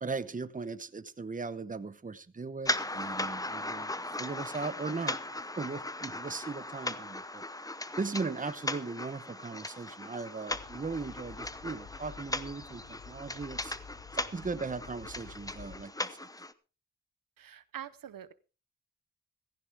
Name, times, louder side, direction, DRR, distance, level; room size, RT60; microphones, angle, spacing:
voice 1, 0.0-3.9 4.2-5.2 5.6-7.4 8.0-13.7 14.1-16.3, right 4 dB, 25° right, 14 dB, 0.9 m, -38 dB
sound 1, 2.6-16.5, left 2 dB, 10° left, 0.8 m, -38 dB
Train, 10.5-15.8, left 6 dB, 65° left, 0.9 m, -51 dB
voice 2, 17.4-18.3, right 10 dB, 90° right, 16 dB, 0.9 m, -44 dB
16.0 x 15.0 x 3.5 m, 0.33 s
wide cardioid pair, 105°, 33 cm